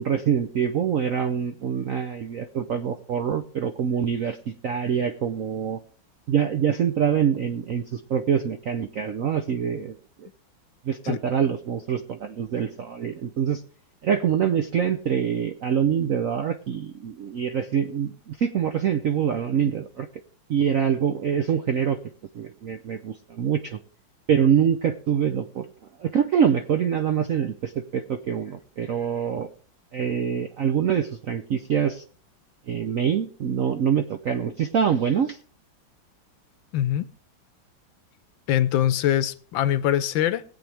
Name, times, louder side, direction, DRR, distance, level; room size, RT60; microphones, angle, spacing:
voice 1, 0.0-5.8 6.3-10.3 10.8-13.6 14.0-20.1 20.5-22.0 22.3-23.8 24.3-25.7 26.0-29.5 29.9-32.0 32.7-35.4, right 8 dB, 70° right, 0.8 m, -25 dB
voice 2, 36.7-37.1 38.5-40.4, left 11 dB, 75° left, 1.4 m, -23 dB
20.5 x 8.3 x 3.4 m
omnidirectional pair, 2.2 m